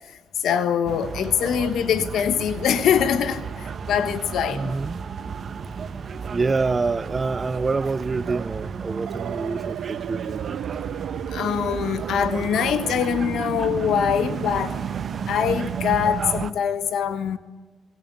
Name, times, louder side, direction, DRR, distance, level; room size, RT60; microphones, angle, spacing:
voice 1, 0.1-4.7 11.1-14.8 15.3-17.4, left 8 dB, 75° left, 1.3 m, -23 dB
sound 1, 0.9-16.5, right 6 dB, 50° right, 1.2 m, -33 dB
voice 2, 4.5-5.0 6.3-10.6, right 4 dB, 30° right, 0.7 m, -26 dB
sound 2, 9.1-16.5, right 11 dB, 80° right, 0.6 m, -34 dB
21.0 x 17.5 x 9.5 m
cardioid pair, 90°, 0 cm